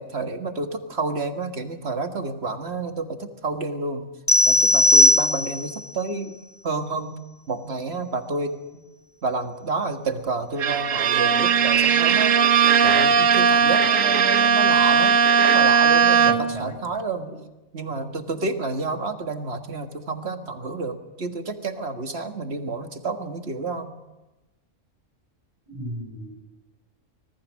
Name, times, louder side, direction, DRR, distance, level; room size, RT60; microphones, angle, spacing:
voice 1, 0.0-4.1 4.4-6.4 6.6-7.1 7.5-8.5 9.2-12.4 12.8-17.5 17.7-23.9, right 3 dB, 50° right, 6 dB, 1.9 m, -29 dB
sound 1, 4.3-5.8, left 1 dB, 15° left, 0.8 m, -17 dB
Bowed string instrument, 10.6-16.7, right 6 dB, 75° right, 1.4 m, -18 dB
voice 2, 16.3-16.7 25.7-26.4, equal, 20° right, 4 dB, 5.4 m, -36 dB
25.5 x 19.5 x 6.4 m, 1.0 s
omnidirectional pair, 1.4 m